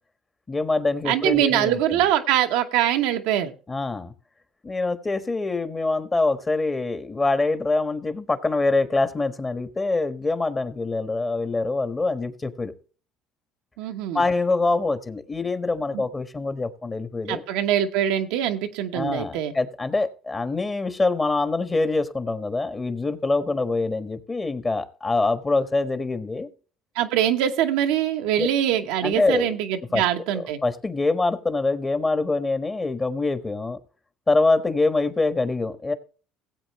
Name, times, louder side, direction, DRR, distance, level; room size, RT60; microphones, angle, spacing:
voice 1, 0.5-2.0 3.7-4.1 4.6-12.7 14.1-17.4 18.9-26.5 28.4-28.5 29.0-29.5 29.9-30.0 30.3-33.8 34.3-35.9, left 3 dB, 25° left, 10 dB, 1.4 m, -24 dB
voice 2, 1.0-3.5 13.8-14.2 15.9-16.0 17.3-19.5 27.0-30.6, right 11 dB, 80° right, 5 dB, 1.0 m, -23 dB
17.0 x 8.1 x 3.1 m, 0.38 s
supercardioid pair, 75°, 0 cm